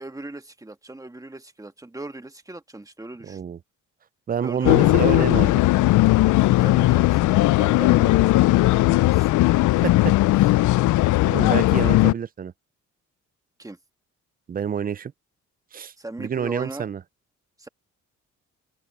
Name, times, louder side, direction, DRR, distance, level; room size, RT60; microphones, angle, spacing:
voice 1, 0.0-3.4 4.4-5.6 6.6-9.3 9.7-9.8 13.6-13.8 16.0-16.9 17.6-17.7, right 2 dB, 10° right, 1.6 m, -38 dB
voice 2, 3.2-3.6 4.3-5.5 9.8-10.5 11.3-12.5 14.5-15.1 15.7-15.9 16.2-17.0, right 7 dB, 30° right, 0.5 m, -28 dB
sound 1, 4.6-12.1, left 18 dB, 75° left, 0.5 m, -18 dB
open air
cardioid pair, 90°, 30 cm